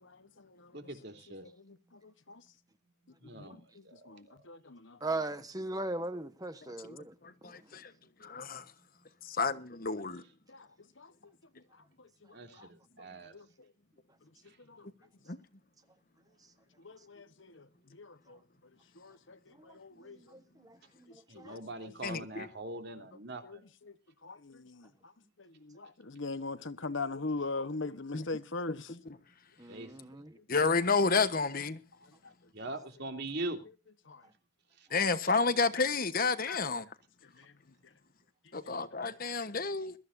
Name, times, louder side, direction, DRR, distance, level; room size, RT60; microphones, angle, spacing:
voice 1, 0.2-0.9 1.4-2.4 3.3-5.0 10.5-10.7 11.0-11.1 12.5-12.7 13.0-13.7 14.7-14.9 16.8-18.4 19.0-20.3 21.3-21.9 23.4-23.9 24.2-25.1 25.4-28.9 32.6-32.8 34.1-34.2 36.5-36.6 37.4-37.5, left 3 dB, 60° left, 1.2 m, -42 dB
voice 2, 0.7-1.5 3.2-4.0 12.3-13.3 21.3-23.6 29.7-30.2 32.5-33.6, right 2 dB, 50° right, 3.1 m, -42 dB
voice 3, 5.0-7.1 7.4-7.5 19.6-21.6 29.6-30.4, right 2 dB, 15° right, 1.2 m, -39 dB
voice 4, 7.2-7.9 8.2-8.6 9.2-10.2 15.3-15.4 22.0-22.5 28.1-28.2 28.9-29.0 30.5-31.8 34.9-36.9 38.5-39.9, left 4 dB, 40° left, 1.2 m, -30 dB
22.0 x 14.0 x 2.7 m
head